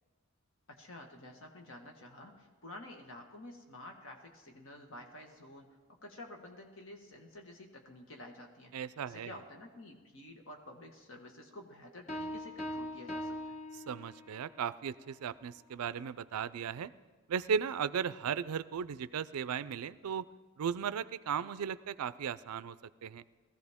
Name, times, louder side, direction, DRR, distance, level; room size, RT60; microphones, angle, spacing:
voice 1, 0.7-13.6, left 1 dB, 60° left, 3 dB, 1.5 m, -51 dB
voice 2, 8.7-9.3 13.9-16.9 17.3-20.3 20.6-22.8 23.0-23.2, right 7 dB, 90° right, 16 dB, 0.4 m, -36 dB
sound 1, 12.1-14.5, left 1 dB, 35° left, 1.1 m, -41 dB
19.0 x 14.5 x 3.6 m, 1.4 s
head